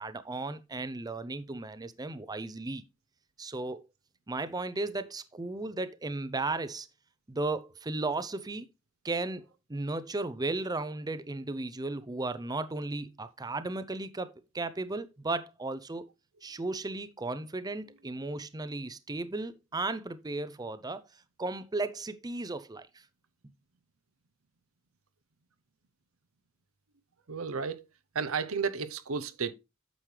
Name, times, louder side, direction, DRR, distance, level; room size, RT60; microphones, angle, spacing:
voice 1, 0.0-2.8 3.4-3.9 4.3-6.9 7.3-8.7 9.0-16.1 16.4-21.0 21.4-22.9, right 2 dB, 20° right, 0.6 m, -35 dB
voice 2, 27.3-27.8 28.1-29.5, right 5 dB, 85° right, 0.8 m, -32 dB
9.0 x 6.3 x 3.2 m
head